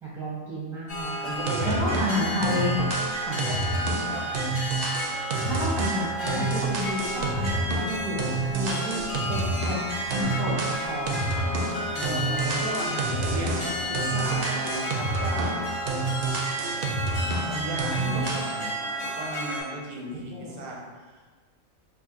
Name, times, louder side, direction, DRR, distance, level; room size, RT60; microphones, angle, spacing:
voice 1, 0.0-1.3 1.6-2.8 3.2-3.4 5.4-9.0 9.3-9.8 10.1-11.4 17.6-18.1 20.3-20.5, equal, ahead, -6 dB, 0.5 m, -31 dB
sound 1, 0.9-19.6, equal, 45° left, 0.8 m, -32 dB
voice 2, 1.2-2.0 3.4-3.6 4.1-4.2 11.9-15.7 17.3-20.8 21.1-21.2, right 2 dB, 90° right, -2 dB, 1.1 m, -35 dB
sound 2, 1.5-2.1 2.4-9.8 10.1-11.8 12.0-15.6 15.9-17.5 17.8-18.5, right 3 dB, 60° right, 0.6 m, -29 dB
2.6 x 2.4 x 3.8 m, 1.4 s
omnidirectional pair, 1.4 m